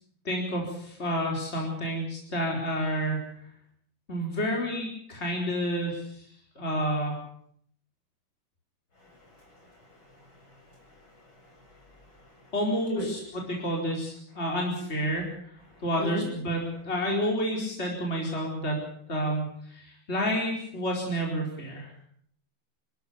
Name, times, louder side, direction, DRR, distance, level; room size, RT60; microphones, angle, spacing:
voice 1, 0.2-3.2 4.1-6.3 6.5-7.2 12.5-15.3 15.8-18.8 19.1-21.9, equal, 30° left, -1 dB, 4.8 m, -29 dB
voice 2, 9.0-12.5 12.9-13.1 15.7-16.3, left 1 dB, 60° left, 0 dB, 8.2 m, -41 dB
28.5 x 13.0 x 8.6 m, 0.65 s
omnidirectional pair, 2.4 m